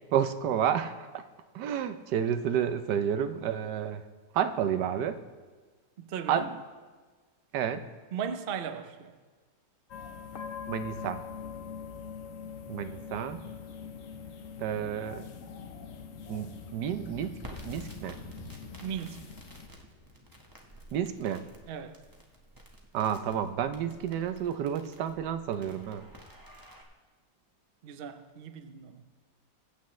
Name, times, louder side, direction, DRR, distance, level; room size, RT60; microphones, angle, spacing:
voice 1, 0.1-1.2 1.5-4.0 4.3-5.2 6.3-6.5 7.5-7.8 10.7-11.2 12.7-13.4 14.6-15.3 16.3-17.4 17.6-18.2 20.9-21.4 22.9-26.1, right 9 dB, 80° right, 1.3 m, -30 dB
voice 2, 6.0-6.5 8.1-9.1 18.8-19.2 21.7-22.0 27.8-29.0, right 7 dB, 55° right, 0.6 m, -37 dB
sound 1, 9.9-19.7, left 6 dB, 55° left, 1.1 m, -43 dB
sound 2, 11.2-21.6, left 2 dB, 75° left, 2.1 m, -53 dB
Crackle, 17.4-26.8, equal, 15° right, 1.1 m, -52 dB
22.5 x 8.3 x 3.2 m
omnidirectional pair, 1.8 m